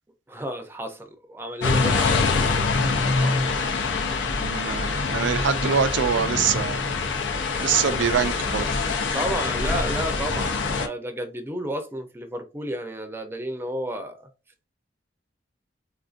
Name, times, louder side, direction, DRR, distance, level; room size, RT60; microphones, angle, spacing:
voice 1, 0.3-2.4 9.1-14.3, right 1 dB, 15° right, 0.5 m, -32 dB
sound 1, 1.6-10.9, left 4 dB, 85° left, 0.6 m, -24 dB
voice 2, 3.1-3.6 4.3-6.9 7.6-9.2, right 7 dB, 85° right, 0.4 m, -25 dB
3.5 x 2.5 x 2.4 m
head